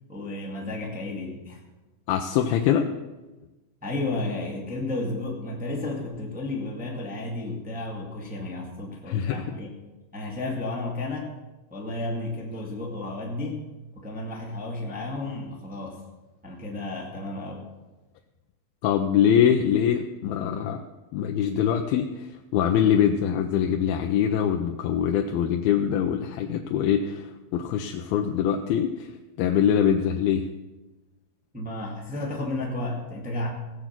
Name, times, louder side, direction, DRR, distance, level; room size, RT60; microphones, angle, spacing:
voice 1, 0.1-1.6 3.8-9.7 10.1-11.3 11.7-13.7 13.9-16.0 16.4-17.7 31.5-33.5, left 2 dB, 5° right, -2 dB, 1.1 m, -32 dB
voice 2, 2.1-2.9 9.1-9.6 18.8-20.8 21.1-29.1 29.4-30.5, left 9 dB, 80° left, 4 dB, 2.5 m, -23 dB
16.5 x 7.9 x 6.0 m, 1.1 s
omnidirectional pair, 4.3 m